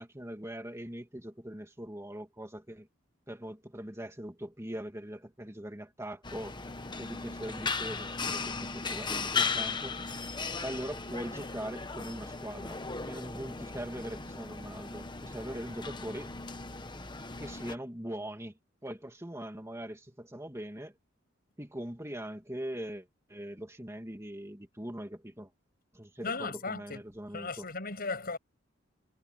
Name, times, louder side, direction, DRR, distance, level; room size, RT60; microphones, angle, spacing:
voice 1, 0.0-2.9 3.3-6.6 7.0-10.0 10.6-16.3 17.4-18.6 18.8-20.9 21.6-25.5 25.9-27.7, right 1 dB, 15° right, 2.6 m, -41 dB
sound 1, 6.2-17.7, left 4 dB, 25° left, 1.2 m, -37 dB
voice 2, 26.2-27.0 27.3-28.4, left 4 dB, 50° left, 6.5 m, -36 dB
head